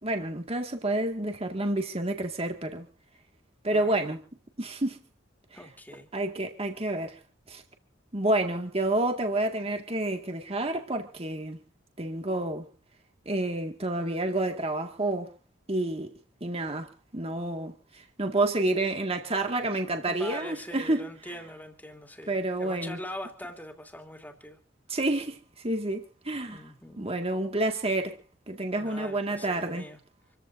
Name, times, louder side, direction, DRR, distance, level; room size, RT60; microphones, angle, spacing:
voice 1, 0.0-2.9 3.6-4.2 4.6-5.0 6.1-7.2 7.5-7.6 8.1-11.6 12.0-12.7 13.3-15.3 15.7-16.1 16.4-17.7 18.2-21.1 22.3-23.0 24.9-26.6 27.0-28.2 28.5-29.9, right 2 dB, 30° right, 2.1 m, -29 dB
voice 2, 3.7-4.1 5.5-6.1 20.1-24.6 26.5-27.1 28.8-30.0, left 1 dB, 10° left, 2.9 m, -42 dB
27.5 x 15.0 x 2.7 m
head